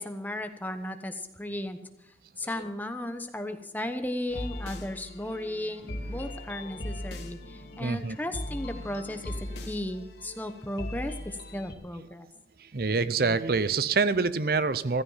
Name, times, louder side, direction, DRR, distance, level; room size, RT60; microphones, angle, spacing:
voice 1, 0.0-12.3, left 1 dB, 10° left, 7 dB, 1.0 m, -35 dB
sound 1, 4.3-11.7, left 1 dB, 80° left, 2.4 m, -39 dB
sound 2, 5.8-9.8, right 1 dB, 40° right, 1.9 m, -51 dB
voice 2, 7.8-8.2 12.6-15.0, right 4 dB, 55° right, 15 dB, 0.6 m, -26 dB
15.0 x 13.5 x 5.7 m, 0.88 s
head